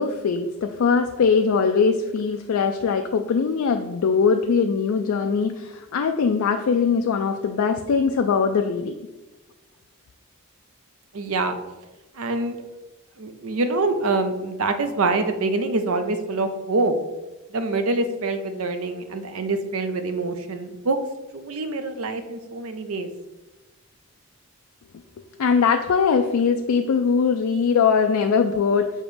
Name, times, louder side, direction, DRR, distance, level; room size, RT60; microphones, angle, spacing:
voice 1, 0.0-8.9 25.4-28.9, left 5 dB, 75° left, 5 dB, 0.4 m, -21 dB
voice 2, 11.1-11.6 12.2-12.6 13.2-16.9 17.5-21.0 21.3-23.1, right 3 dB, 75° right, 8 dB, 0.6 m, -25 dB
6.5 x 3.0 x 5.0 m, 1.1 s
head